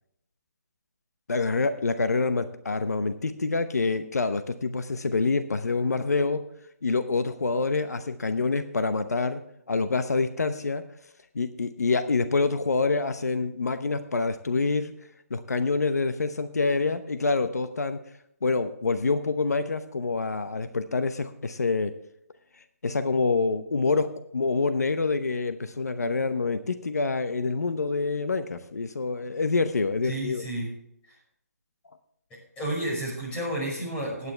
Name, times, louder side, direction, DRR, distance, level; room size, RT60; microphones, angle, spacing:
voice 1, 1.3-6.4 6.8-9.4 9.7-10.8 11.3-14.9 15.3-18.0 18.4-21.9 22.8-30.4, left 4 dB, 90° left, 10 dB, 0.9 m, -26 dB
voice 2, 30.0-30.7 32.6-34.3, right 1 dB, 15° left, -3 dB, 5.6 m, -31 dB
16.5 x 9.7 x 3.3 m, 0.75 s
hypercardioid pair, 155°, 8 cm